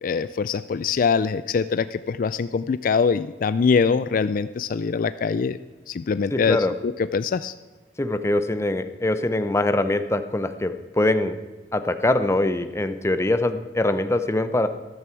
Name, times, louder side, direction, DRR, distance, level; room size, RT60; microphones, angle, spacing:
voice 1, 0.0-5.6 5.9-6.6 6.8-7.5, left 5 dB, 50° left, 14 dB, 0.4 m, -23 dB
voice 2, 6.3-6.7 8.0-11.4 11.7-14.7, left 2 dB, 15° left, 10 dB, 0.7 m, -23 dB
14.0 x 13.0 x 4.6 m, 1.3 s
head